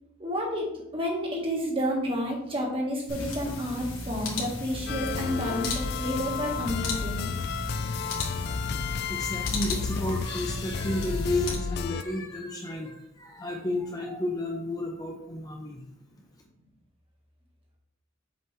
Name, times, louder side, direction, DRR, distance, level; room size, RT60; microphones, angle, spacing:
voice 1, 0.2-0.7 0.9-7.3, equal, 25° right, -1 dB, 1.7 m, -30 dB
sound 1, 3.1-11.5, left 2 dB, 80° left, 2.0 m, -35 dB
sound 2, 4.9-12.0, left 6 dB, 50° left, 0.3 m, -33 dB
voice 2, 9.1-15.8, left 1 dB, 20° left, 0 dB, 0.7 m, -32 dB
7.7 x 5.1 x 3.3 m, 0.77 s
head